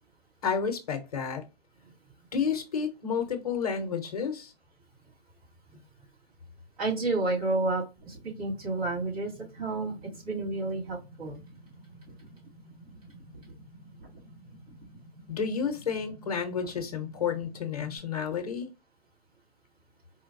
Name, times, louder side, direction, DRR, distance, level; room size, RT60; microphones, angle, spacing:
voice 1, 0.4-1.4 2.3-4.5 15.3-18.7, left 6 dB, 35° left, 0.8 m, -31 dB
voice 2, 6.8-9.9 10.2-11.4, right 2 dB, 35° right, 2.1 m, -30 dB
sound 1, 8.0-18.0, right 1 dB, 60° right, 1.6 m, -51 dB
4.4 x 2.2 x 2.5 m
hypercardioid pair, 155°, 31 cm